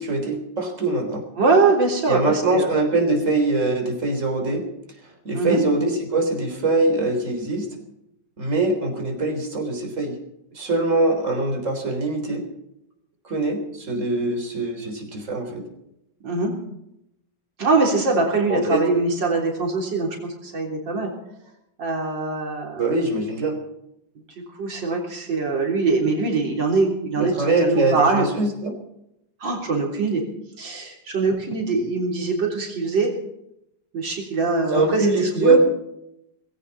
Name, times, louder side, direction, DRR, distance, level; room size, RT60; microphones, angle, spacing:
voice 1, 0.0-1.2 2.1-4.6 5.2-7.7 8.4-10.2 10.5-12.4 13.2-15.7 18.5-18.8 22.7-23.6 27.2-28.7 34.7-35.6, right 2 dB, 40° right, 3 dB, 4.2 m, -22 dB
voice 2, 1.4-2.7 5.3-5.6 16.2-16.5 17.6-21.1 21.8-22.8 24.4-27.3 27.6-28.3 29.4-30.2 30.6-33.2 33.9-35.6, right 3 dB, 85° right, 0 dB, 4.2 m, -23 dB
19.5 x 16.5 x 4.2 m, 0.81 s
omnidirectional pair, 1.9 m